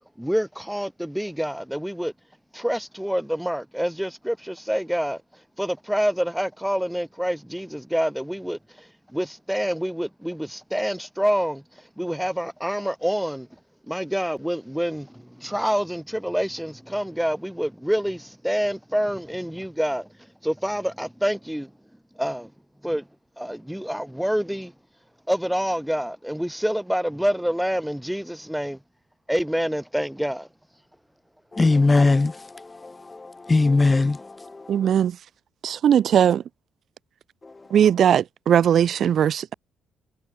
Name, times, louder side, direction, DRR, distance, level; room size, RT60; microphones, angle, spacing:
voice 1, 0.2-2.1 2.5-13.6 13.9-20.1 20.4-21.7 22.1-22.5 22.8-23.1 23.4-24.7 25.3-28.8 29.3-30.5, equal, ahead, 2.3 m, -27 dB
voice 2, 31.5-34.7 37.4-37.5, left 3 dB, 20° left, 1.4 m, -21 dB
voice 3, 34.7-35.2 35.6-36.4 37.7-39.5, right 9 dB, 65° right, 0.9 m, -19 dB
cardioid pair, 90°, 0 cm